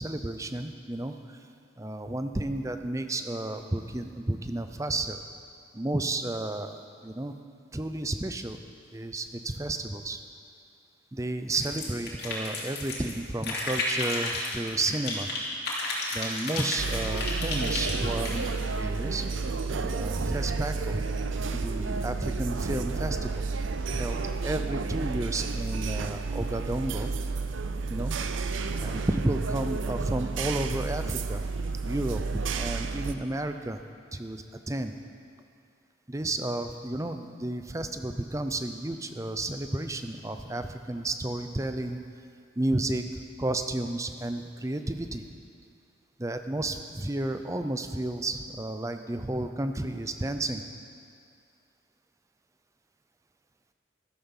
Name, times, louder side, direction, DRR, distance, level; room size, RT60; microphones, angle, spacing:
voice 1, 0.0-1.4 1.8-5.2 5.7-7.3 7.7-8.6 8.9-10.2 11.1-15.3 16.1-18.5 18.7-19.2 19.7-21.0 21.6-23.5 23.9-27.1 27.9-28.2 28.8-31.4 31.8-32.2 32.6-33.8 34.1-34.9 36.1-42.0 42.6-43.0 43.4-45.2 46.2-50.6, right 2 dB, 15° right, 8 dB, 0.6 m, -32 dB
sound 1, 11.5-13.1 13.4-15.4 15.7-18.4, left 2 dB, 55° left, 3.0 m, -32 dB
sound 2, 16.8-33.1, right 4 dB, 85° right, 0.7 m, -31 dB
14.0 x 12.5 x 5.6 m, 2.3 s
head